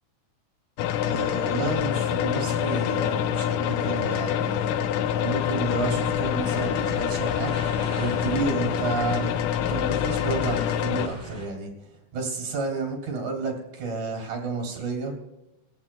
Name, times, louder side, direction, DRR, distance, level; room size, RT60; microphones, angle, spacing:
sound 1, 0.8-11.1, left 10 dB, 85° left, 2.3 m, -26 dB
voice 1, 1.0-4.7 5.1-7.6 8.0-11.7 12.1-15.1, right 3 dB, 65° right, 0 dB, 4.2 m, -31 dB
Male speech man speaking, 2.6-5.8 6.1-9.5, left 2 dB, 35° left, 2.1 m, -40 dB
sound 2, 5.7-11.5, equal, 5° left, 4.4 m, -40 dB
22.5 x 17.0 x 2.2 m, 0.94 s
omnidirectional pair, 3.8 m